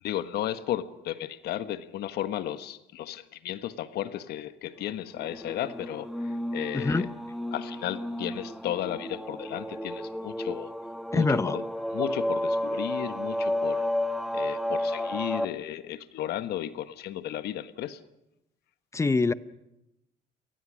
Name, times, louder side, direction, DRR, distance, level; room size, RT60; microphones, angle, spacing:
voice 1, 0.0-7.1 7.5-10.7 11.1-11.6 11.9-13.8 14.3-18.0, left 12 dB, 75° left, 11 dB, 1.3 m, -34 dB
sound 1, 5.1-15.5, left 1 dB, ahead, 1.2 m, -32 dB
voice 2, 6.7-7.1 11.1-11.6 18.9-19.3, left 3 dB, 15° left, 15 dB, 0.8 m, -24 dB
30.0 x 19.0 x 6.3 m, 0.88 s
cardioid pair, 110°, 17 cm